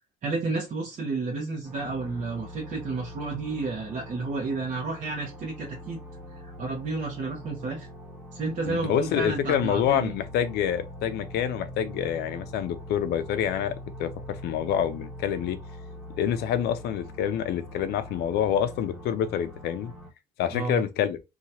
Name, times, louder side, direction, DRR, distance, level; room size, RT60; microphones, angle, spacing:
voice 1, 0.2-6.0 6.4-7.9 8.3-10.1 20.5-20.8, right 3 dB, 45° right, 0.9 m, -31 dB
sound 1, 1.6-20.1, left 1 dB, 5° right, 1.3 m, -43 dB
voice 2, 8.7-15.6 16.2-19.9 20.4-21.2, left 9 dB, 75° left, 0.5 m, -27 dB
2.9 x 2.3 x 2.7 m
cardioid pair, 110°, 17 cm